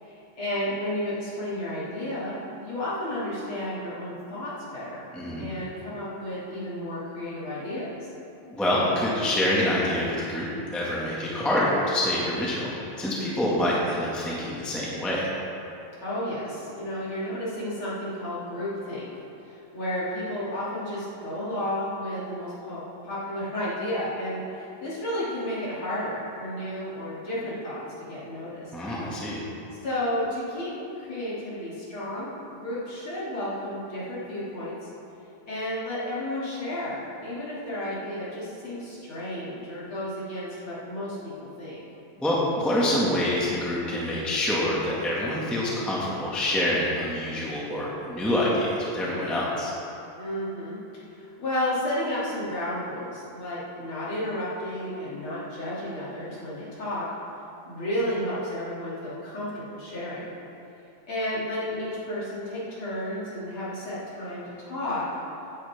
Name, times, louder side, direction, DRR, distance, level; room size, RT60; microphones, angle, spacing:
voice 1, 0.0-5.0 5.4-8.1 16.0-19.1 19.4-28.7 29.8-34.9 35.5-41.8 50.2-50.8 51.1-57.1 57.7-60.3 61.1-65.1, left 1 dB, 40° left, -9 dB, 3.4 m, -32 dB
voice 2, 5.1-5.5 8.5-15.3 28.7-29.4 42.2-49.7, left 1 dB, ahead, -6 dB, 0.8 m, -26 dB
16.0 x 9.7 x 3.7 m, 2.9 s
omnidirectional pair, 3.9 m